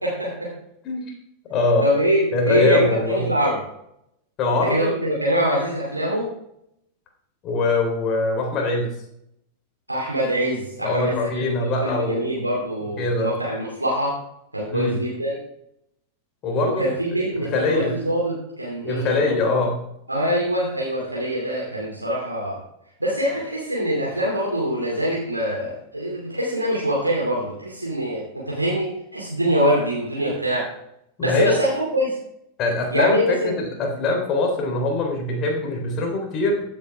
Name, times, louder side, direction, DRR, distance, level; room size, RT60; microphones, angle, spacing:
voice 1, 0.0-0.5 1.8-3.6 4.7-6.3 9.9-14.1 14.5-15.4 16.8-19.3 20.1-22.6 23.0-30.6 31.2-32.2 32.9-33.5, equal, 85° right, -4 dB, 2.7 m, -24 dB
voice 2, 1.5-1.8 2.3-3.3 4.4-4.9 7.4-8.9 10.8-12.5 13.0-13.3 14.7-15.0 16.4-16.8 17.3-18.0 18.8-19.8 31.2-31.6 32.6-36.6, left 2 dB, 35° left, 2 dB, 3.4 m, -22 dB
15.0 x 8.7 x 3.5 m, 0.77 s
figure-of-eight pair, 90°, 0 cm